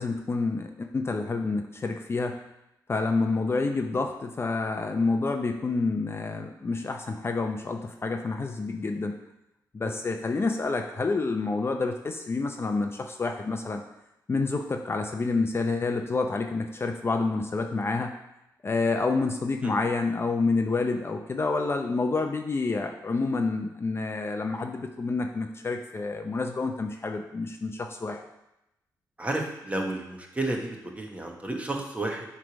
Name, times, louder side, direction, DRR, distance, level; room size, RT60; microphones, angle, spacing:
voice 1, 0.0-2.4 2.9-9.2 9.7-13.8 14.3-18.1 18.6-28.2, left 3 dB, 35° left, 4 dB, 0.6 m, -28 dB
voice 2, 29.2-32.2, right 2 dB, 20° right, 1 dB, 1.3 m, -32 dB
7.8 x 3.3 x 5.1 m, 0.87 s
cardioid pair, 80°, 7 cm